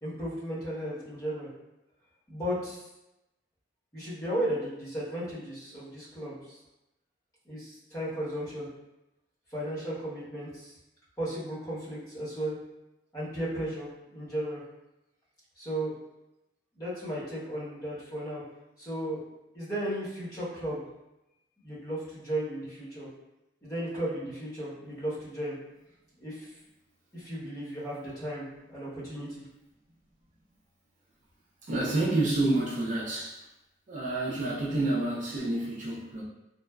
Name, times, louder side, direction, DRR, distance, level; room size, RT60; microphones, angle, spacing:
voice 1, 0.0-1.5 2.3-2.8 3.9-6.5 7.4-8.7 9.5-10.7 11.2-12.6 13.1-14.6 15.6-15.9 16.7-18.4 18.8-19.2 19.5-20.9 21.6-23.1 23.6-25.5 26.2-26.5 27.1-29.4, right 1 dB, 20° left, -10 dB, 1.0 m, -35 dB
voice 2, 31.6-33.4 33.9-36.2, right 2 dB, 45° right, -5 dB, 0.5 m, -29 dB
3.2 x 2.0 x 2.3 m, 0.93 s
head